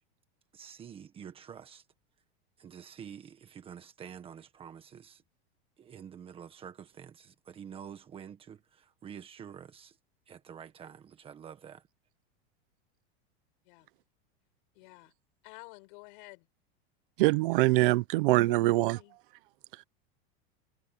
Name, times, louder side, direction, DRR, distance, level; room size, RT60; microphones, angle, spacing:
voice 1, 0.5-1.8 2.6-5.2 5.8-9.9 10.3-11.8, right 8 dB, 15° right, 1.5 m, -48 dB
voice 2, 14.7-15.1 15.4-16.5 18.4-19.2, left 28 dB, 50° left, 6.9 m, -51 dB
voice 3, 17.2-19.0, right 19 dB, 55° right, 0.9 m, -24 dB
supercardioid pair, 170°, 32 cm